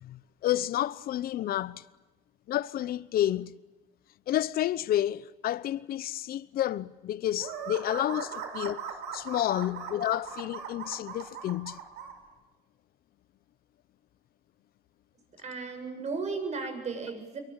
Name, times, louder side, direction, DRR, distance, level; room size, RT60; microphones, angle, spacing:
voice 1, 0.0-1.8 2.5-3.6 4.3-8.8 9.1-11.8, left 12 dB, 60° left, 0.9 m, -30 dB
sound 1, 7.4-12.1, right 7 dB, 85° right, 6.0 m, -39 dB
voice 2, 15.4-17.4, right 4 dB, 40° right, 7.7 m, -35 dB
27.5 x 23.5 x 8.9 m
cardioid pair, 110°, 17 cm